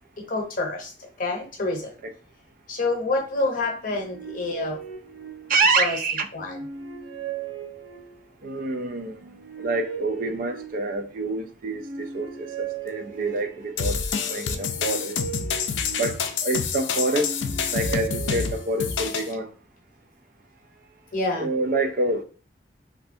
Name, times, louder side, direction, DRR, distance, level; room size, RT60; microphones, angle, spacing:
voice 1, 0.3-1.9 2.7-4.8 5.8-6.0 6.3-6.6 21.1-21.5, left 2 dB, 50° left, 0.8 m, -27 dB
sound 1, 3.8-5.9 6.4-8.4 9.1-11.2 11.7-13.7 14.4-16.5 17.0-19.0, right 7 dB, 80° right, 0.8 m, -38 dB
voice 2, 5.5-6.3 8.4-9.2 9.6-15.4 16.0-17.3 17.7-19.5 21.4-22.2, right 3 dB, 50° right, 0.4 m, -27 dB
sound 2, 13.8-19.3, left 6 dB, 80° left, 0.4 m, -27 dB
3.2 x 2.6 x 2.6 m
head